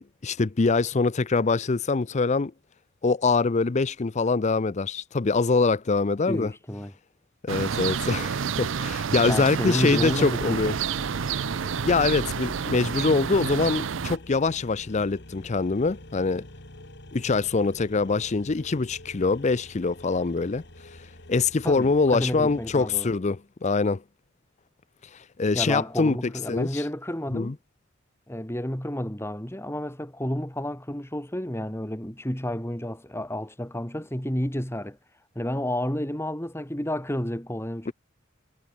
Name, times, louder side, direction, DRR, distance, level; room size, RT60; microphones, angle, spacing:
voice 1, 0.0-2.5 3.0-6.5 7.4-10.7 11.8-16.4 17.1-20.6 21.3-24.0 25.4-26.2 26.5-26.8 27.3-27.5 37.9-38.0, left 4 dB, 35° left, 0.5 m, -24 dB
voice 2, 6.2-6.9 9.2-10.8 21.6-23.1 25.5-27.5 28.3-37.9, left 1 dB, 10° left, 3.2 m, -31 dB
sound 1, 7.5-14.2, right 6 dB, 65° right, 0.5 m, -29 dB
sound 2, 9.9-23.0, left 1 dB, 60° left, 5.9 m, -46 dB
head